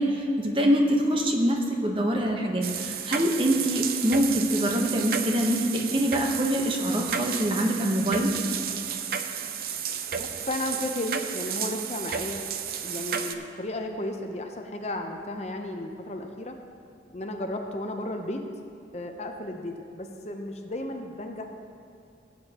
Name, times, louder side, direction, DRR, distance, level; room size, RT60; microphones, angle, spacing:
voice 1, 0.0-8.3, equal, 30° right, 1 dB, 1.0 m, -24 dB
sound 1, 2.6-13.3, right 7 dB, 55° right, 0.5 m, -32 dB
voice 2, 10.1-12.4 12.8-16.5 17.1-18.4 18.9-21.4, left 1 dB, 35° left, 4 dB, 0.7 m, -34 dB
16.5 x 8.5 x 2.9 m, 2.5 s
head